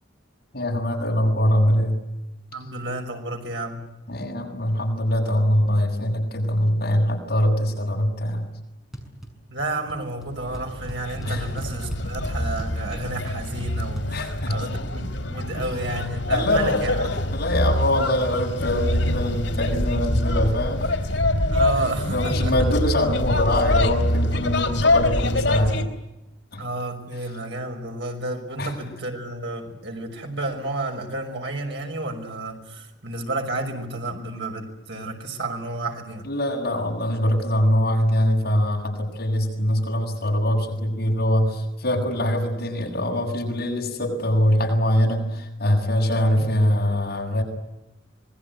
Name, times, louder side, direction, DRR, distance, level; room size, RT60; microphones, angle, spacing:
voice 1, 0.5-2.0 4.1-8.4 11.3-11.5 14.1-14.7 15.6-15.7 16.3-20.9 22.1-25.8 26.5-26.6 28.6-28.7 36.2-47.4, left 1 dB, 55° left, 0 dB, 7.7 m, -23 dB
voice 2, 2.5-3.9 9.5-17.1 21.5-22.5 26.6-36.2, right 2 dB, 65° right, 3 dB, 5.9 m, -31 dB
sound 1, 8.9-9.3 9.6-10.0 10.2-10.3 10.5-14.1, equal, ahead, 6.6 m, -36 dB
sound 2, 10.4-25.8, left 1 dB, 85° left, 3.6 m, -25 dB
26.0 x 21.5 x 9.5 m, 0.95 s
head